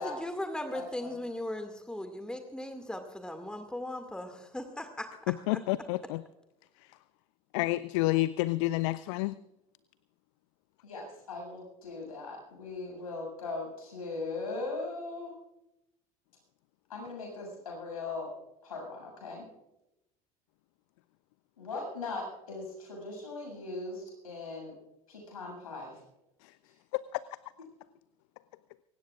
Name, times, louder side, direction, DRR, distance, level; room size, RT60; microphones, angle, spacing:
voice 1, 0.0-5.1, left 1 dB, 5° left, 6 dB, 2.1 m, -38 dB
voice 2, 0.7-1.2 10.8-15.4 16.9-18.3 18.6-19.5 21.6-24.7 25.1-26.0 26.6-26.7, left 3 dB, 75° left, 0 dB, 7.3 m, -39 dB
voice 3, 5.3-6.2 7.5-9.4 26.4-26.5 26.9-27.2, left 18 dB, 55° left, 19 dB, 0.4 m, -29 dB
23.5 x 18.5 x 2.5 m, 0.90 s
figure-of-eight pair, 65°, 18 cm